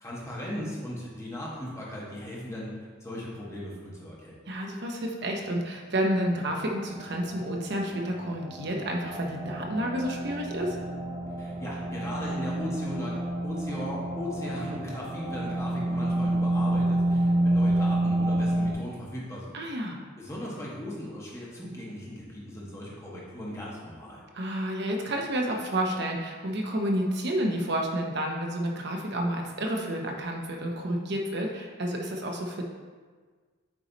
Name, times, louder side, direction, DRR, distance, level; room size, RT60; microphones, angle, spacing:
voice 1, 0.0-4.4 11.4-19.5 20.2-24.2, left 1 dB, 15° left, -6 dB, 1.2 m, -38 dB
voice 2, 4.5-10.8 19.5-20.0 24.3-32.6, right 1 dB, 55° right, 1 dB, 0.8 m, -30 dB
sound 1, 6.5-18.7, right 1 dB, 25° right, 0.5 m, -29 dB
8.1 x 3.1 x 4.0 m, 1.5 s
head